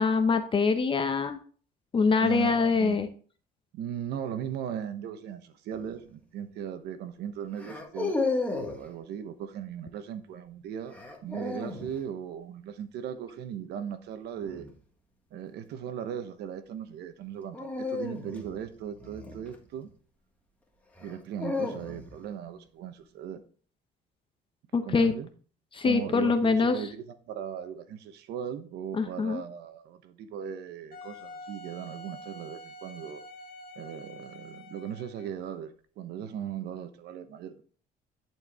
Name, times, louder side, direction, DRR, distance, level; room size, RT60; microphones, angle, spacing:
voice 1, 0.0-1.4 1.9-3.1 24.7-25.1 25.7-26.8 28.9-29.4, left 4 dB, 30° left, 0.8 m, -24 dB
voice 2, 2.2-3.0 3.7-8.2 8.5-14.7 15.3-19.9 21.0-23.4 24.8-25.3 25.8-33.2 33.8-37.6, right 8 dB, 80° right, 1.1 m, -38 dB
sound 1, 5.7-6.0 7.6-8.8 10.9-11.9 14.4-14.7 17.5-19.9 21.0-22.3, left 3 dB, 10° left, 1.5 m, -33 dB
Wind instrument woodwind instrument, 30.9-35.4, left 1 dB, 60° left, 1.8 m, -46 dB
11.0 x 4.6 x 3.6 m
cardioid pair, 110°, 17 cm